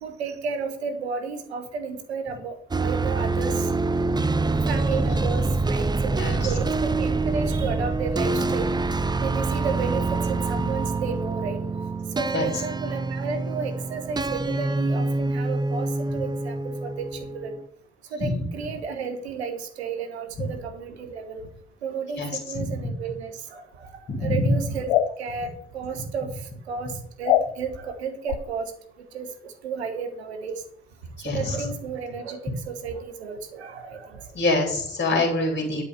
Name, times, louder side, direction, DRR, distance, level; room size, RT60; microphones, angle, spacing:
voice 1, 0.0-3.7 4.7-8.7 9.2-11.6 12.1-17.5 18.1-21.4 21.8-26.3 26.7-26.9 27.2-28.7 29.1-30.6 31.2-34.2, right 5 dB, 80° right, 8 dB, 1.1 m, -32 dB
sound 1, 2.7-17.7, right 3 dB, 15° right, 0.6 m, -26 dB
sound 2, 24.9-25.1 27.2-27.5 28.3-28.4, left 11 dB, 75° left, 0.6 m, -20 dB
voice 2, 31.2-31.7 34.3-35.8, left 2 dB, 35° left, 1 dB, 3.1 m, -25 dB
11.0 x 4.8 x 6.6 m, 0.66 s
figure-of-eight pair, 40°, 32 cm